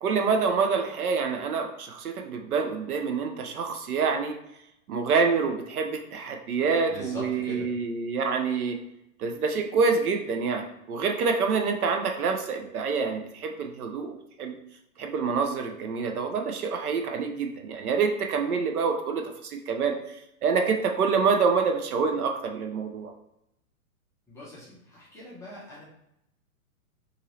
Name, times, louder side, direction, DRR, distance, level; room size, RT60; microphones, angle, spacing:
voice 1, 0.0-4.3 4.9-8.8 9.2-14.5 15.0-20.0 20.4-23.1, right 5 dB, 90° right, 4 dB, 0.7 m, -27 dB
voice 2, 6.9-7.7 24.3-25.8, left 1 dB, 5° left, -8 dB, 0.4 m, -41 dB
2.8 x 2.7 x 2.9 m, 0.82 s
hypercardioid pair, 125°, 43 cm